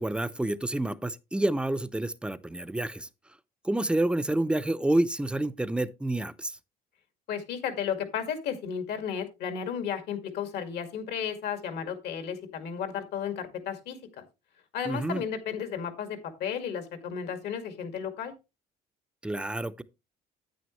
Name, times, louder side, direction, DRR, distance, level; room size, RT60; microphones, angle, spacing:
voice 1, 0.0-3.1 3.6-6.6 14.9-15.2 19.2-19.8, right 1 dB, 5° right, 0.6 m, -28 dB
voice 2, 7.3-14.0 14.7-18.3, left 7 dB, 75° left, 2.1 m, -33 dB
9.3 x 8.8 x 3.1 m
cardioid pair, 110°, 17 cm